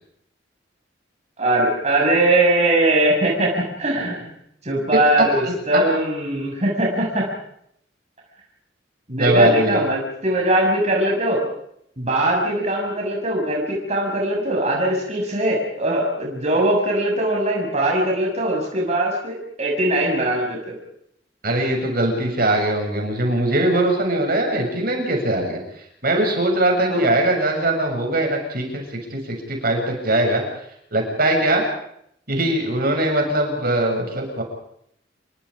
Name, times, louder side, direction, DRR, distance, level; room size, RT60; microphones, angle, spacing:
voice 1, 1.4-4.3 4.6-7.2 9.1-11.4 12.0-20.8 26.9-27.0, right 1 dB, 40° right, -1 dB, 6.7 m, -21 dB
voice 2, 5.2-5.8 9.1-9.8 21.4-30.4 30.9-31.6 32.3-34.4, right 1 dB, 55° right, 2 dB, 7.6 m, -21 dB
29.5 x 24.0 x 5.1 m, 0.72 s
head